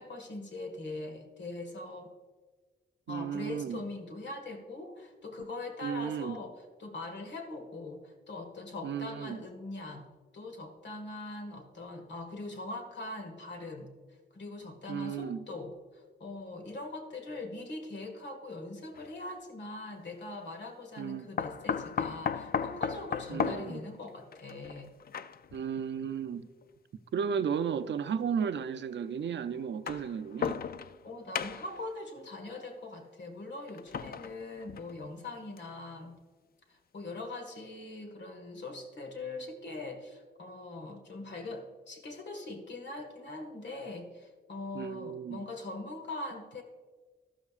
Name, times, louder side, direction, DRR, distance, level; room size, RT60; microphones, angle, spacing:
voice 1, 0.0-2.1 3.1-13.9 14.3-24.9 31.0-36.1 36.7-46.6, left 2 dB, 70° left, 1.8 m, -42 dB
voice 2, 3.1-3.8 5.8-6.4 8.8-9.4 14.9-15.4 21.0-21.3 23.3-23.8 25.5-26.5 27.1-30.6 44.7-45.4, right 7 dB, 75° right, 0.5 m, -34 dB
sound 1, 18.9-19.1 21.4-25.6 26.6-26.7 27.9-28.0 29.6-31.1 31.3-31.9 33.7-35.1 35.6-35.7 36.0-36.1, left 7 dB, 55° left, 0.4 m, -35 dB
13.0 x 12.5 x 2.5 m
wide cardioid pair, 160°, 19 cm